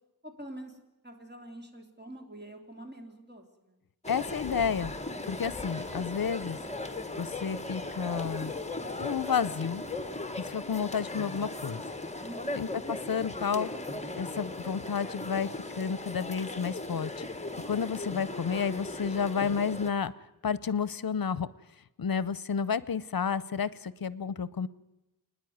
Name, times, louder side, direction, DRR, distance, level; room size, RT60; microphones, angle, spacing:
voice 1, 0.2-3.8 12.2-12.6, right 1 dB, 25° right, 3 dB, 3.3 m, -46 dB
sound 1, 4.0-19.9, left 2 dB, 20° left, 1.4 m, -38 dB
voice 2, 4.1-4.9 5.3-6.6 7.2-8.5 9.0-9.8 10.4-11.8 12.6-13.7 14.2-15.5 15.8-17.2 17.7-20.1 20.4-21.5 22.0-24.7, left 6 dB, 65° left, 18 dB, 0.7 m, -31 dB
28.0 x 10.0 x 9.4 m, 0.99 s
wide cardioid pair, 85°, 37 cm